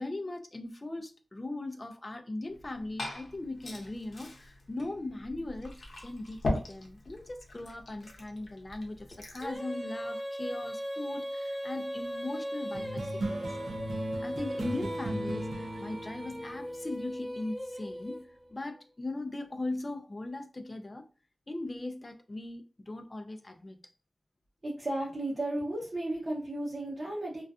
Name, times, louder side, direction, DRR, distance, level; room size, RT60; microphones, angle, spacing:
voice 1, 0.0-13.6 14.2-21.1 21.5-23.8, left 2 dB, 30° left, 0.4 m, -39 dB
Liquid, 2.5-9.6, left 2 dB, 70° left, 0.7 m, -40 dB
Female singing, 9.4-18.5, equal, 5° right, 0.7 m, -38 dB
sound 1, 12.7-17.7, right 1 dB, 90° right, 0.3 m, -38 dB
voice 2, 24.6-27.4, right 1 dB, 40° right, 0.7 m, -34 dB
2.5 x 2.3 x 2.3 m
wide cardioid pair, 105°, 0 cm